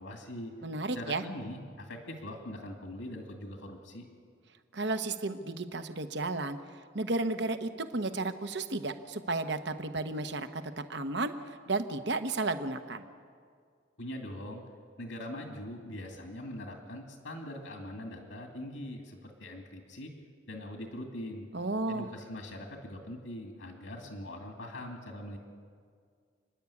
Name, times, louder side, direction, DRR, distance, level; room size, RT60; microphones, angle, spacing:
voice 1, 0.0-0.5 0.9-4.1 14.0-14.6 15.0-20.1 20.5-21.5 21.9-25.4, left 1 dB, 80° left, 2 dB, 2.4 m, -42 dB
voice 2, 0.6-1.2 4.7-6.6 6.9-10.6 10.9-11.3 11.7-13.0 21.5-22.1, right 2 dB, 60° right, 9 dB, 1.1 m, -33 dB
29.5 x 10.5 x 8.5 m, 2.1 s
head